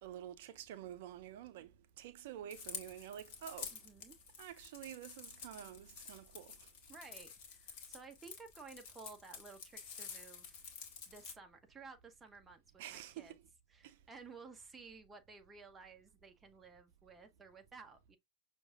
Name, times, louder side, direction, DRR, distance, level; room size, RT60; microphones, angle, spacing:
voice 1, 0.0-3.8 4.4-6.7 12.8-13.4 13.8-14.0, right 11 dB, 50° right, 0.6 m, -49 dB
sound 1, 2.5-11.3, left 6 dB, 45° left, 1.3 m, -50 dB
voice 2, 3.7-4.2 6.9-10.6 11.1-13.3 13.7-18.2, right 4 dB, 15° right, 0.7 m, -55 dB
6.2 x 2.5 x 2.4 m
figure-of-eight pair, 90°, 0 cm